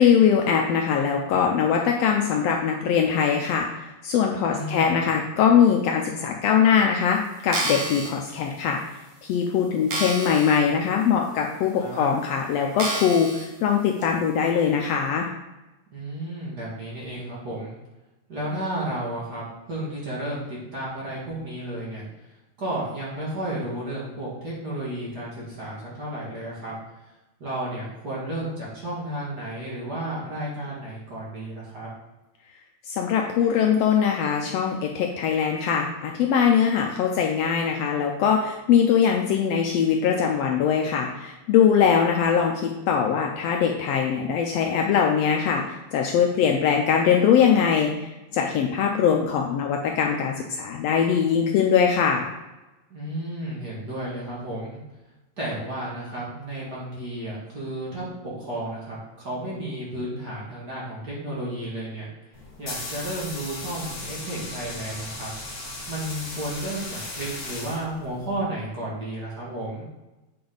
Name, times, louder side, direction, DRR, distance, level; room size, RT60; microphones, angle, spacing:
voice 1, 0.0-8.8 9.2-13.3 13.6-15.3 32.9-52.3, left 7 dB, 75° left, 1 dB, 1.6 m, -22 dB
voice 2, 4.4-5.0 11.8-12.1 15.9-17.8 18.3-22.1 22.6-26.7 27.4-31.9 52.9-54.8 55.4-58.1 58.4-62.1 62.6-65.3 65.9-69.8, right 1 dB, 35° right, -7 dB, 2.3 m, -32 dB
sound 1, 7.4-8.1 8.8-8.9 9.3-9.4 9.9-10.6 11.0-11.1 11.9-12.0 12.8-13.5 14.0-14.1, right 2 dB, 80° right, 2.8 m, -29 dB
sound 2, 62.3-68.3, left 2 dB, 45° left, 2.4 m, -37 dB
8.7 x 4.7 x 3.9 m, 1.1 s
omnidirectional pair, 3.3 m